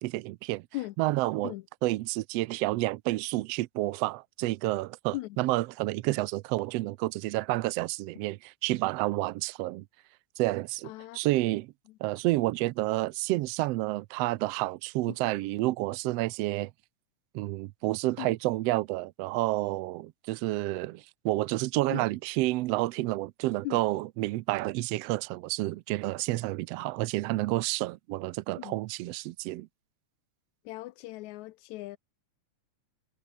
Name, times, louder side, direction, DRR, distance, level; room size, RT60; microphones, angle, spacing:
voice 1, 0.0-0.6 1.0-1.5 1.8-9.8 10.4-11.7 12.0-16.7 17.3-29.7, right 18 dB, 80° right, 1.5 m, -30 dB
voice 2, 10.8-11.2 15.1-15.2 18.2-18.4 21.9-22.1 23.6-23.8 28.6-28.8 30.7-32.0, left 18 dB, 80° left, 2.0 m, -38 dB
omnidirectional pair, 3.3 m